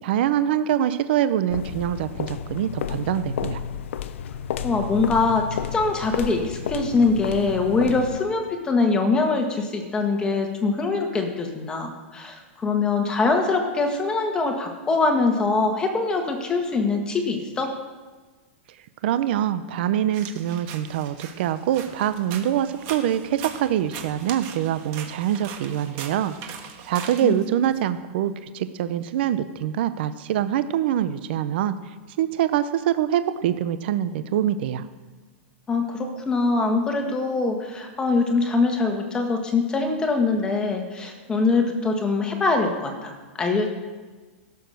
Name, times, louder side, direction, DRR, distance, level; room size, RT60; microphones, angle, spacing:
voice 1, 0.0-3.6 19.0-26.4 26.9-31.8 32.2-34.9, right 11 dB, 50° right, 12 dB, 0.6 m, -24 dB
sound 1, 1.5-8.3, left 8 dB, 70° left, 0.7 m, -32 dB
voice 2, 4.6-17.7 27.2-27.3 35.7-43.7, left 3 dB, 10° left, 4 dB, 1.4 m, -23 dB
sound 2, 20.1-27.8, right 7 dB, 35° right, 1.6 m, -40 dB
16.0 x 7.1 x 6.4 m, 1.3 s
supercardioid pair, 165°, 7 cm